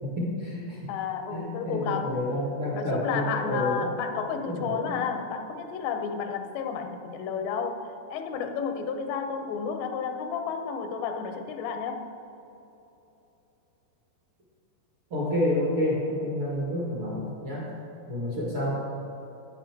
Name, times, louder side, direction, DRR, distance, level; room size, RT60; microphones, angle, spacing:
voice 1, 0.0-0.8 1.3-3.9 4.4-5.0 15.1-17.6 18.1-18.8, left 1 dB, 50° right, -6 dB, 1.6 m, -29 dB
voice 2, 0.9-2.2 2.7-12.1, left 6 dB, 85° left, 6 dB, 2.9 m, -31 dB
9.7 x 9.6 x 4.4 m, 2.9 s
omnidirectional pair, 4.9 m